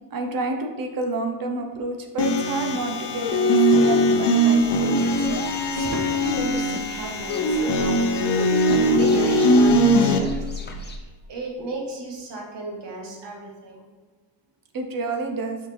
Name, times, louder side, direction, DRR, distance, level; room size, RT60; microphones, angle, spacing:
voice 1, 0.1-5.4 14.7-15.6, right 3 dB, 50° right, 4 dB, 0.9 m, -29 dB
sound 1, 2.2-10.2, equal, 65° left, 0.7 m, -20 dB
sound 2, 4.4-11.0, left 2 dB, 25° left, 0.6 m, -40 dB
voice 2, 5.7-8.7 8.9-13.9, right 2 dB, 70° right, -2 dB, 1.5 m, -34 dB
6.3 x 4.4 x 3.4 m, 1.3 s
wide cardioid pair, 130°, 44 cm